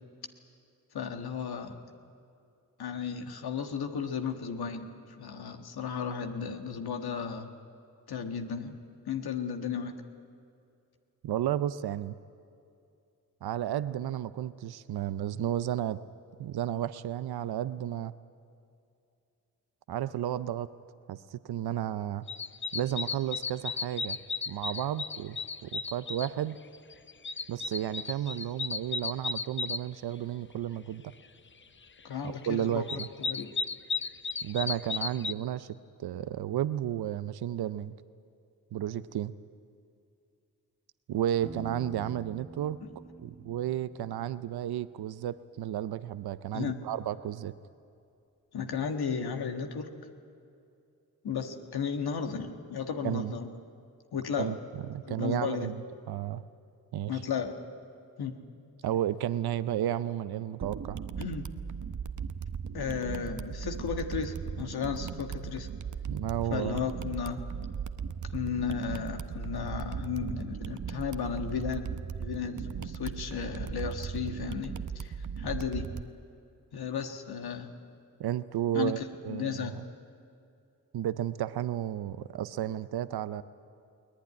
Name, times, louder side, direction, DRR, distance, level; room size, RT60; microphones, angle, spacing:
voice 1, 0.9-1.8 2.8-4.9 5.2-7.5 8.1-8.8 9.1-10.0 32.0-32.8 33.2-33.5 42.8-42.9 46.5-46.8 48.5-49.9 51.2-53.5 54.1-54.5 55.0-55.7 57.1-57.6 58.2-58.4 61.2-61.5 62.7-65.7 66.5-67.4 68.3-71.9 72.2-75.9 76.7-77.7 78.7-79.8, left 6 dB, 85° left, 5 dB, 1.5 m, -34 dB
voice 2, 11.2-12.2 13.4-16.0 16.4-18.1 19.9-20.7 21.1-22.3 22.7-24.2 24.5-25.4 25.6-26.6 27.5-31.1 32.2-33.1 34.4-35.7 36.0-37.9 38.7-39.3 41.1-42.8 43.2-47.5 53.0-53.4 54.4-54.6 54.9-55.8 56.1-56.4 56.9-57.2 58.8-61.0 66.1-66.8 78.2-79.8 80.9-83.4, right 11 dB, 85° right, 14 dB, 0.6 m, -32 dB
sound 1, 22.3-26.3 26.7-29.8 32.3-32.4 32.7-35.3, left 4 dB, 30° left, 0.7 m, -34 dB
Piano, 41.4-45.1, right 2 dB, 10° right, 1.8 m, -47 dB
sound 2, 60.6-76.0, right 7 dB, 55° right, 0.9 m, -37 dB
22.0 x 18.0 x 9.6 m, 2.5 s
cardioid pair, 45°, 37 cm